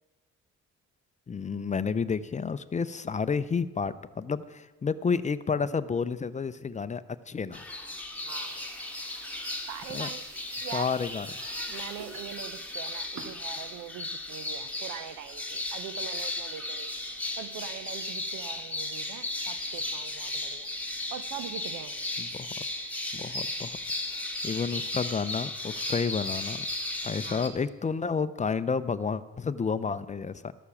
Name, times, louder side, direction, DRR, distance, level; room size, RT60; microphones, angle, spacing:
voice 1, 1.3-7.6 9.9-10.1 10.7-11.3 22.2-22.5 23.1-23.8 24.1-26.6 27.0-30.5, left 5 dB, 25° left, 14 dB, 0.5 m, -30 dB
sound 1, 7.5-27.5, left 2 dB, 5° left, 1.4 m, -35 dB
voice 2, 8.1-8.7 9.7-10.3 10.6-11.0 11.7-16.9 17.4-20.7 21.1-22.1 27.2-27.4, right 10 dB, 90° right, 14 dB, 0.7 m, -42 dB
sound 2, 8.4-14.2, right 4 dB, 75° right, 1.5 m, -50 dB
12.5 x 6.6 x 7.1 m, 1.2 s
cardioid pair, 90°, 30 cm